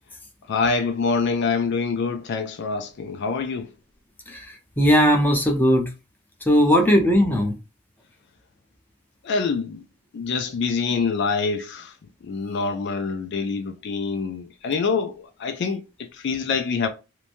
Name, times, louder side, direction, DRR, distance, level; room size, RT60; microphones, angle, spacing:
voice 1, 0.5-3.7 9.2-9.8 10.1-12.0 12.2-16.9, left 4 dB, 55° left, 0.4 m, -25 dB
voice 2, 4.8-5.9 6.5-7.5, equal, 10° left, 0.6 m, -18 dB
3.0 x 2.1 x 2.5 m
head